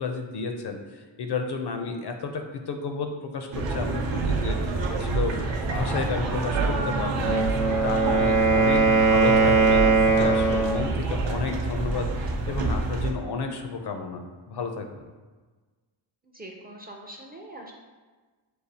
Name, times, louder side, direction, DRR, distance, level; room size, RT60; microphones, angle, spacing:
voice 1, 0.0-5.4 5.7-15.0, left 4 dB, 60° left, 5 dB, 0.5 m, -32 dB
sound 1, 3.5-13.1, right 3 dB, 70° right, 0.7 m, -28 dB
Wind instrument woodwind instrument, 7.1-10.9, right 3 dB, 40° right, 0.8 m, -20 dB
voice 2, 16.3-17.7, right 1 dB, 20° right, 0 dB, 0.4 m, -42 dB
6.4 x 2.3 x 2.7 m, 1.3 s
wide cardioid pair, 120°, 47 cm